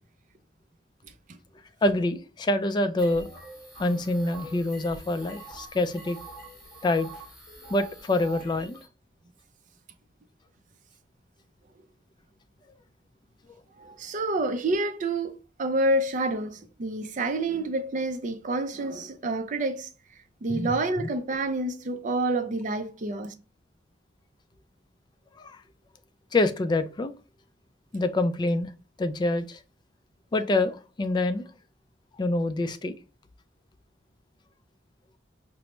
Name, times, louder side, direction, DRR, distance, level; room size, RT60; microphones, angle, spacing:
voice 1, 1.8-3.3 3.8-6.2 6.8-7.1 7.7-8.8 20.5-21.1 25.4-25.6 26.3-27.1 27.9-28.7 29.0-29.6 30.3-31.5 32.2-33.0, left 2 dB, 25° left, 0.3 m, -26 dB
sound 1, 3.0-8.9, right 2 dB, ahead, 1.4 m, -45 dB
voice 2, 13.8-19.9 20.4-23.3, right 2 dB, 45° right, 0.4 m, -28 dB
4.4 x 2.0 x 2.9 m
head